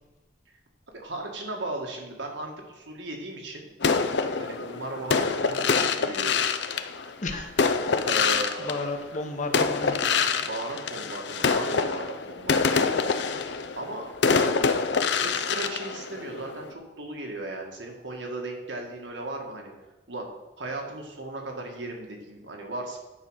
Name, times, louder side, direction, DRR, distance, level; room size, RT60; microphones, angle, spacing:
voice 1, 0.9-3.7 4.4-6.4 8.0-8.9 10.3-13.0 13.7-14.1 15.2-19.7 20.1-20.3 20.6-23.0, right 2 dB, 85° right, 1 dB, 1.9 m, -36 dB
sound 1, 3.8-9.2 9.5-16.7, left 5 dB, 70° left, 0.5 m, -26 dB
voice 2, 7.2-7.9 8.6-10.0, left 2 dB, 45° left, 4 dB, 1.2 m, -33 dB
9.6 x 5.4 x 6.4 m, 1.1 s
head